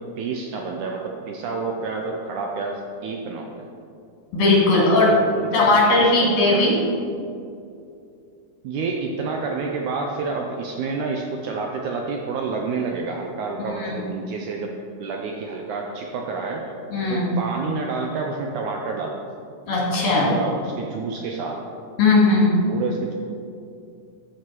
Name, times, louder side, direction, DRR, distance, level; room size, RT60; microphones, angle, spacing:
voice 1, 0.0-3.7 4.6-6.7 8.6-14.7 15.0-16.6 17.1-19.2 20.2-21.6 22.7-23.1, right 4 dB, 80° right, 1 dB, 1.8 m, -29 dB
voice 2, 4.3-5.1 5.5-6.8 13.7-14.1 16.9-17.3 19.7-20.3 22.0-22.5, left 2 dB, 70° left, -4 dB, 3.8 m, -18 dB
14.0 x 4.8 x 4.5 m, 2.5 s
omnidirectional pair, 4.1 m